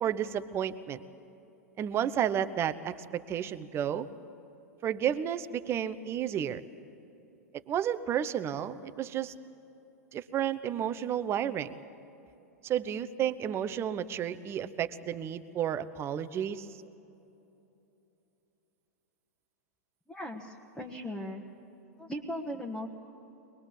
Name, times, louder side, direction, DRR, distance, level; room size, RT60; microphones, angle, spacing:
voice 1, 0.0-1.0 1.8-4.1 4.8-6.6 7.7-9.3 10.1-11.7 12.6-16.7, right 9 dB, 30° right, 11 dB, 0.8 m, -32 dB
voice 2, 20.1-21.5 22.0-22.9, equal, 5° left, -1 dB, 1.4 m, -38 dB
23.0 x 20.5 x 7.3 m, 2.9 s
figure-of-eight pair, 100°, 9 cm